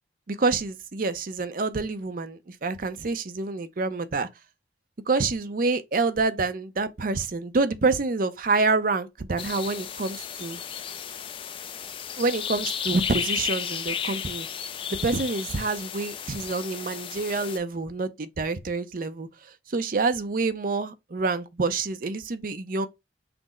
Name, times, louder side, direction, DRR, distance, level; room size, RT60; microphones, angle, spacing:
voice 1, 0.3-4.3 5.1-10.6 12.2-14.5 15.0-19.3 19.7-22.9, right 3 dB, 50° right, 0.5 m, -27 dB
sound 1, 9.4-17.6, left 8 dB, 30° left, 0.3 m, -33 dB
5.9 x 2.0 x 3.7 m
head